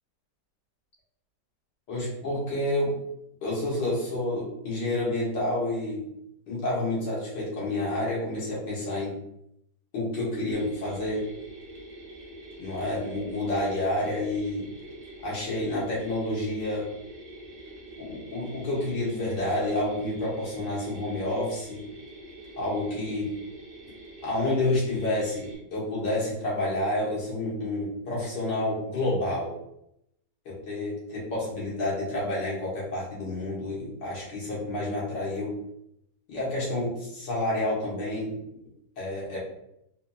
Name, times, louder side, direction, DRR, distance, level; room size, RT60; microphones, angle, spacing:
voice 1, 1.9-2.9 3.4-6.1 6.5-9.2 9.9-11.3 12.6-14.7 15.2-16.9 18.0-21.8 22.6-23.3 24.2-29.5 30.5-35.5 36.3-38.4 39.0-39.4, left 1 dB, 80° left, -6 dB, 2.0 m, -29 dB
Mechanisms, 10.5-25.6, right 1 dB, 40° right, 1.0 m, -45 dB
4.1 x 2.8 x 2.2 m, 0.79 s
omnidirectional pair, 1.8 m